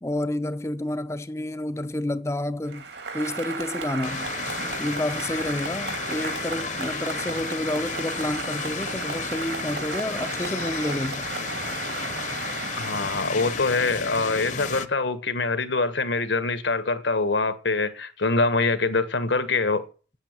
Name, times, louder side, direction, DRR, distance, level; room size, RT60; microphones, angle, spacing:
voice 1, 0.0-2.8 3.1-4.3 4.8-11.3, left 1 dB, 15° left, 0.5 m, -29 dB
Applause, 2.7-14.2, right 4 dB, 75° right, 2.6 m, -34 dB
sound 1, 4.0-14.9, left 6 dB, 40° left, 0.8 m, -33 dB
voice 2, 12.8-19.8, left 3 dB, 80° left, 1.4 m, -24 dB
8.8 x 8.7 x 8.9 m
head